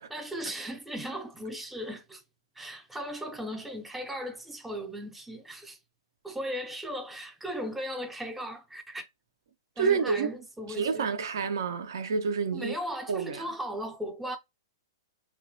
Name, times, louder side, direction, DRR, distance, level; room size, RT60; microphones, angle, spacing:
voice 1, 0.0-2.2 2.6-5.8 6.2-9.1 9.8-11.1 12.5-14.4, equal, 5° right, 0.5 m, -37 dB
voice 2, 9.8-10.3 10.7-12.8 13.1-13.5, right 5 dB, 70° right, 0.4 m, -28 dB
2.9 x 2.1 x 2.5 m
hypercardioid pair, 115°, 2 cm